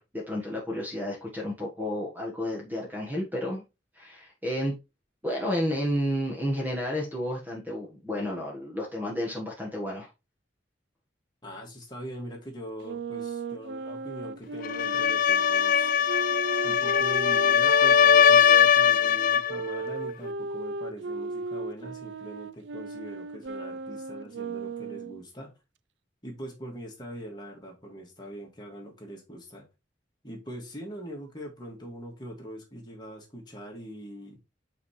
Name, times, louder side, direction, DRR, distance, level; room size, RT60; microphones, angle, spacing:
voice 1, 0.0-3.6 4.0-4.7 5.2-10.1, equal, 10° right, -2 dB, 1.4 m, -31 dB
voice 2, 11.4-15.9 16.6-25.5 26.2-29.7 30.2-34.4, equal, 20° left, 0 dB, 2.2 m, -42 dB
Wind instrument woodwind instrument, 12.8-18.7 19.5-25.2, right 3 dB, 70° right, 0.4 m, -36 dB
sound 1, 14.6-19.6, left 8 dB, 45° left, 0.3 m, -21 dB
8.3 x 4.4 x 3.2 m, 0.25 s
head